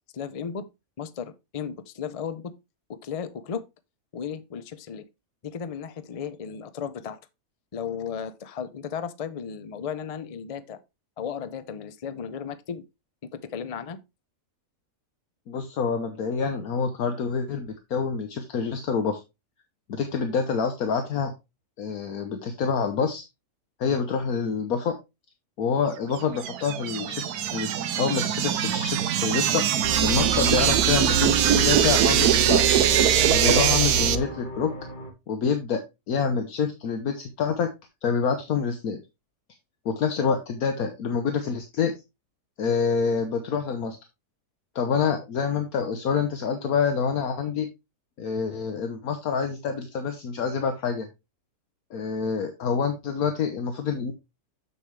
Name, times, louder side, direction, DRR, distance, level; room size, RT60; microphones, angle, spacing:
voice 1, 0.1-0.7 1.0-2.5 2.9-3.6 4.1-5.1 5.4-7.2 7.7-10.8 11.2-12.8 13.2-14.0, left 7 dB, 55° left, 0.4 m, -35 dB
voice 2, 15.5-19.2 19.9-21.3 21.8-23.2 23.8-25.0 25.6-29.6 30.0-32.6 33.3-34.7 35.3-35.8 36.1-37.7 38.0-39.0 39.8-41.9 42.6-44.0 44.7-47.7 48.2-51.1 51.9-54.1, left 6 dB, 70° left, 1.4 m, -27 dB
sound 1, 26.2-34.2, right 10 dB, 75° right, 1.2 m, -22 dB
sound 2, 29.8-35.1, right 4 dB, 35° left, 1.8 m, -29 dB
7.2 x 7.0 x 3.2 m
omnidirectional pair, 1.6 m